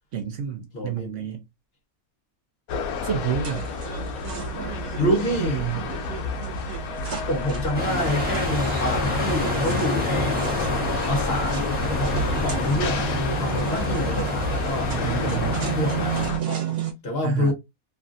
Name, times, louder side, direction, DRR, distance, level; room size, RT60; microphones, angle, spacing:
voice 1, 0.1-1.5 3.0-3.7 4.9-5.9 14.9-15.6 17.2-17.5, right 8 dB, 65° right, 0.9 m, -29 dB
voice 2, 0.7-1.2 5.0-5.6 7.2-10.4 11.1-11.6 12.0-16.4 17.0-17.5, equal, 50° left, 1.1 m, -27 dB
sound 1, 2.7-16.4, left 3 dB, 85° left, 1.0 m, -30 dB
sound 2, 3.4-16.9, right 9 dB, 85° right, 1.5 m, -34 dB
sound 3, 7.7-16.3, left 1 dB, 10° right, 0.9 m, -28 dB
3.2 x 2.4 x 2.5 m
omnidirectional pair, 1.5 m